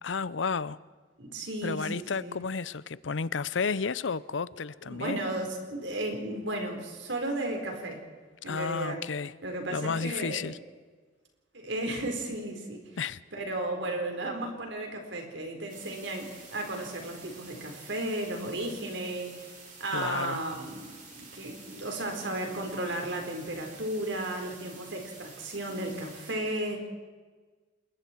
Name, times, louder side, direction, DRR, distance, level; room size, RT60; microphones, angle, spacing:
voice 1, 0.0-0.8 1.6-5.2 8.5-9.3 9.7-10.6 13.0-13.2 19.9-20.4, left 5 dB, 85° left, 0.7 m, -32 dB
voice 2, 1.2-2.4 4.8-8.0 8.4-9.0 9.4-10.5 11.5-13.0 13.3-19.3 19.8-26.9, right 1 dB, 75° right, 4.6 m, -34 dB
sound 1, 15.7-26.3, right 4 dB, 45° right, 6.0 m, -50 dB
27.5 x 21.5 x 4.6 m
head